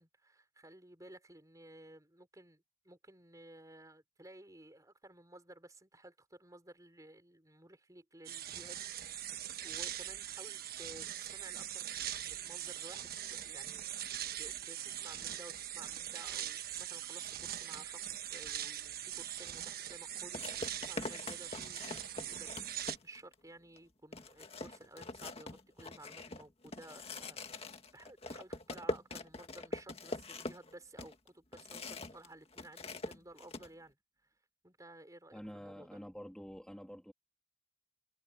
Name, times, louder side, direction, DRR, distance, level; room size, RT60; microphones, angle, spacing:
voice 1, 0.0-14.1 14.4-22.0 22.3-25.5 25.8-34.0 34.6-36.0, right 1 dB, 20° right, 4.8 m, -55 dB
sound 1, 8.2-23.0, right 11 dB, 60° right, 1.3 m, -42 dB
sound 2, 19.4-19.5 20.3-23.3 23.8-23.9 24.1-32.3 32.5-33.7, left 2 dB, 35° left, 1.9 m, -43 dB
voice 2, 35.3-37.1, equal, 5° left, 2.7 m, -48 dB
head